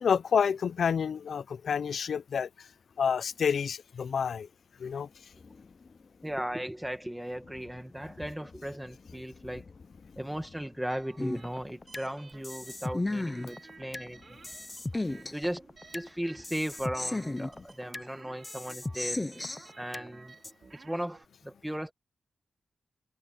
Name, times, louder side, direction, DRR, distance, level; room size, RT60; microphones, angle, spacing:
voice 1, 0.0-2.7 3.0-4.5 4.8-5.1, left 7 dB, 65° left, 0.5 m, -29 dB
sound 1, 2.6-17.7, left 4 dB, 40° left, 4.3 m, -57 dB
voice 2, 6.2-9.7 10.2-14.4 15.3-15.7 15.9-19.3 19.8-20.3 20.7-21.9, equal, 5° right, 2.0 m, -37 dB
sound 2, 10.9-21.2, right 4 dB, 40° right, 2.5 m, -54 dB
sound 3, 11.2-12.1 12.4-14.1 14.4-16.1 16.4-18.1 18.4-20.1 20.4-20.5, left 2 dB, 15° left, 0.7 m, -35 dB
wide cardioid pair, 165°, 0 cm